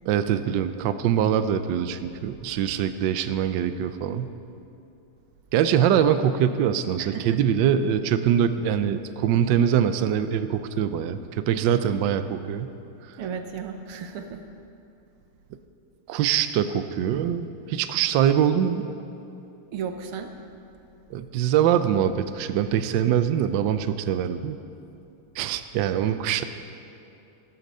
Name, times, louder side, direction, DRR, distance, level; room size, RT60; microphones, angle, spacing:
voice 1, 0.1-4.3 5.5-12.7 16.1-18.8 21.1-24.6 25.4-26.4, right 9 dB, 70° right, 10 dB, 1.2 m, -23 dB
voice 2, 7.0-7.4 13.2-14.4 19.7-20.3, right 6 dB, 90° right, 6 dB, 1.9 m, -34 dB
14.0 x 13.5 x 5.4 m, 2.7 s
omnidirectional pair, 2.3 m